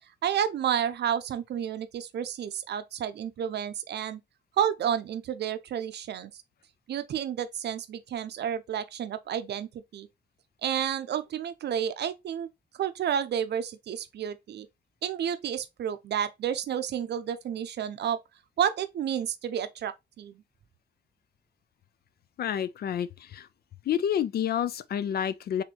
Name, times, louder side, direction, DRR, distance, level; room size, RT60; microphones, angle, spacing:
voice 1, 0.2-4.2 4.6-6.3 6.9-10.1 10.6-12.5 12.7-14.7 15.0-18.2 18.6-20.3, right 9 dB, 70° right, 0.6 m, -30 dB
voice 2, 22.4-23.5 23.8-25.6, left 9 dB, 60° left, 0.4 m, -29 dB
4.3 x 3.6 x 2.9 m
wide cardioid pair, 175°, 18 cm